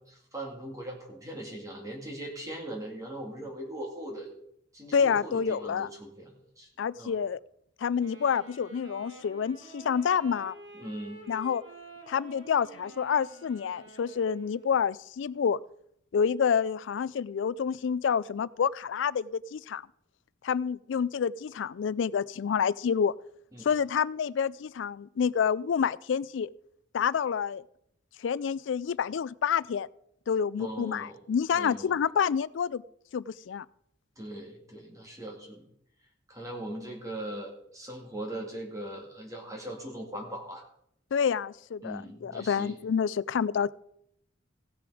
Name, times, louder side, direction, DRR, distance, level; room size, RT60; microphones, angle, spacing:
voice 1, 0.1-4.3 4.7-6.7 7.0-7.1 10.7-11.2 23.5-23.7 30.6-31.2 31.5-31.9 34.2-35.7 36.3-40.6 41.8-42.8, right 1 dB, 20° right, 0 dB, 2.3 m, -40 dB
voice 2, 4.9-5.9 6.8-7.4 7.8-10.6 11.3-11.6 12.1-15.6 16.1-19.8 20.4-23.1 23.6-26.5 26.9-27.6 28.2-29.9 30.3-32.8 33.1-33.7 41.1-43.7, left 7 dB, 75° left, 21 dB, 0.4 m, -28 dB
Wind instrument woodwind instrument, 8.0-14.9, right 2 dB, 70° right, 3.1 m, -50 dB
16.5 x 6.9 x 4.9 m, 0.72 s
head